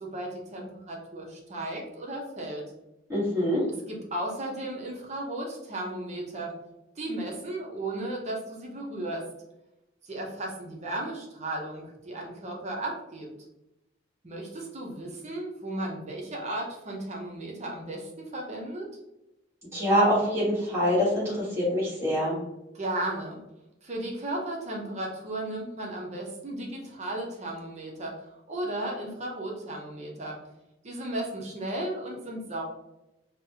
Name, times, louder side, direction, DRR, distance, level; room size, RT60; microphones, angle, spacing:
voice 1, 0.0-2.6 3.9-6.5 7.0-9.3 10.0-13.3 14.2-18.9 22.7-23.4 23.8-30.4 30.8-32.6, right 1 dB, 35° right, -1 dB, 0.7 m, -35 dB
voice 2, 3.1-3.6 19.7-22.4, equal, 15° right, -7 dB, 1.2 m, -25 dB
4.0 x 2.1 x 2.7 m, 0.93 s
head